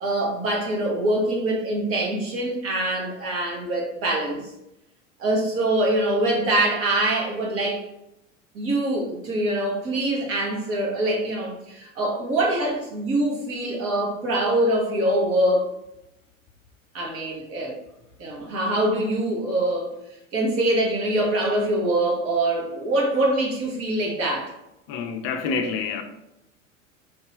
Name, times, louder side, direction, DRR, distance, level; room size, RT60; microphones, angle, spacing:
voice 1, 0.0-4.4 5.2-7.8 8.5-15.6 16.9-17.7 18.2-19.9 20.3-24.5, right 1 dB, 35° right, 1.4 m, -24 dB
voice 2, 24.9-26.0, left 5 dB, 35° left, 0.6 m, -27 dB
4.7 x 2.9 x 3.2 m
figure-of-eight pair, 85°, 38 cm